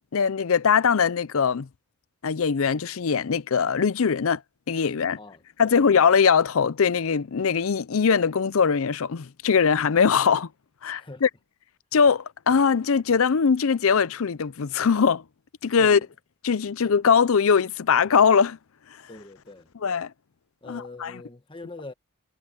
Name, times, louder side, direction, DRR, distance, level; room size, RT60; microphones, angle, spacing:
voice 1, 0.1-1.7 2.2-4.4 4.7-5.2 5.6-10.5 10.8-11.3 11.9-15.2 15.6-16.0 16.4-18.6 19.8-20.1 20.6-21.1, left 6 dB, 65° left, 0.5 m, -21 dB
voice 2, 5.2-5.8 11.0-11.2 15.8-16.0 19.1-19.7 20.6-21.9, left 2 dB, 20° left, 1.4 m, -43 dB
head